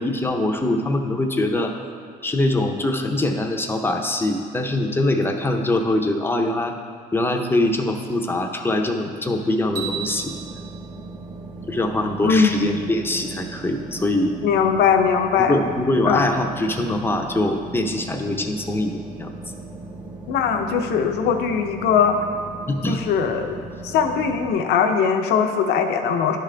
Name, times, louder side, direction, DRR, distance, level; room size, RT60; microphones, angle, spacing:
voice 1, 0.0-1.7 2.2-6.8 7.1-10.3 11.7-14.3 15.4-19.3 22.7-23.0, left 1 dB, 15° left, 3 dB, 0.6 m, -23 dB
sound 1, 9.7-24.5, right 2 dB, 45° right, 1.5 m, -37 dB
sound 2, 9.8-12.0, right 9 dB, 80° right, 1.4 m, -36 dB
voice 2, 12.2-12.8 14.4-15.6 16.1-16.3 20.3-22.2 22.9-23.6 23.8-26.4, left 6 dB, 75° left, 5 dB, 0.6 m, -20 dB
11.0 x 3.7 x 3.3 m, 2.1 s
cardioid pair, 110°, 17 cm